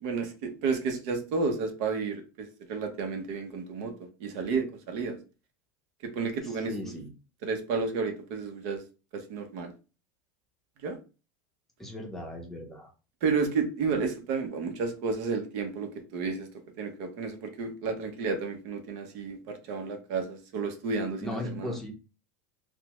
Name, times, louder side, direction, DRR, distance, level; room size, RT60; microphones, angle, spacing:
voice 1, 0.0-3.9 4.2-5.2 6.0-6.9 7.4-8.8 9.1-9.7 10.8-11.0 13.2-16.5 16.8-21.8, right 4 dB, 60° right, 6 dB, 0.7 m, -31 dB
voice 2, 6.7-7.1 11.8-12.9 21.2-21.9, left 1 dB, 5° left, 0 dB, 0.6 m, -37 dB
3.3 x 2.0 x 3.0 m, 0.33 s
supercardioid pair, 150°, 9 cm